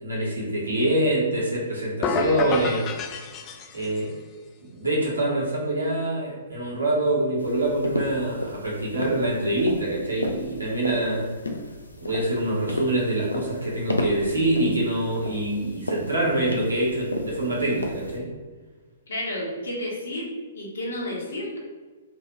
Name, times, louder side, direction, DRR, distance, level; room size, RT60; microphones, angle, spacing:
voice 1, 0.0-2.8 3.7-4.1 4.6-11.3 12.0-18.3, right 1 dB, 80° right, -5 dB, 1.3 m, -25 dB
sound 1, 2.0-4.1, left 4 dB, 25° left, 0.3 m, -29 dB
sound 2, 7.4-18.2, left 1 dB, 80° left, 0.5 m, -33 dB
voice 2, 19.1-21.6, left 1 dB, 65° left, -2 dB, 1.1 m, -31 dB
3.6 x 2.4 x 3.1 m, 1.4 s
figure-of-eight pair, 115°, 0 cm